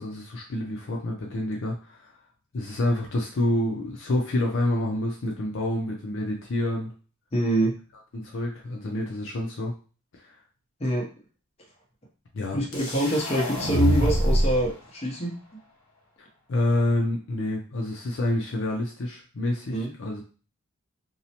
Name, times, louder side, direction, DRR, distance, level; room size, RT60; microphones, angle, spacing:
voice 1, 0.0-2.2 2.5-6.9 8.1-9.7 10.1-10.3 12.3-12.6 16.5-20.2, left 1 dB, 60° left, 0 dB, 0.5 m, -28 dB
voice 2, 7.3-7.7 10.8-11.1 12.5-15.3 19.7-19.9, equal, 30° left, -2 dB, 0.8 m, -25 dB
sound 1, 12.7-14.7, right 1 dB, 80° left, 0.9 m, -24 dB
2.7 x 2.0 x 2.8 m, 0.36 s
head